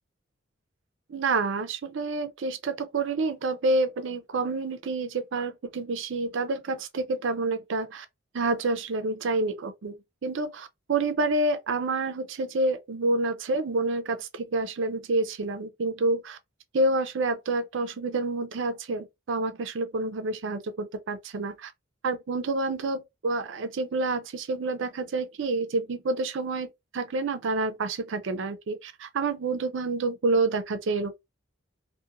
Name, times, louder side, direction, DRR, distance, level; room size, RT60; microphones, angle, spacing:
voice 1, 1.1-8.1 8.3-10.0 10.2-16.4 16.7-21.7 22.0-31.2, right 2 dB, 65° right, 0.4 m, -28 dB
2.4 x 2.1 x 2.8 m
head